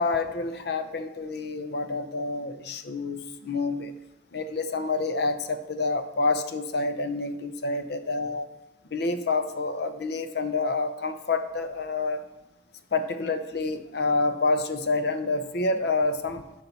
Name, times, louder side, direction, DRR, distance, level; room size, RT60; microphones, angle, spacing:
voice 1, 0.0-3.9 4.3-8.5 8.9-12.2 12.9-16.4, left 3 dB, 60° left, 9 dB, 0.7 m, -28 dB
11.0 x 5.7 x 4.1 m, 0.99 s
head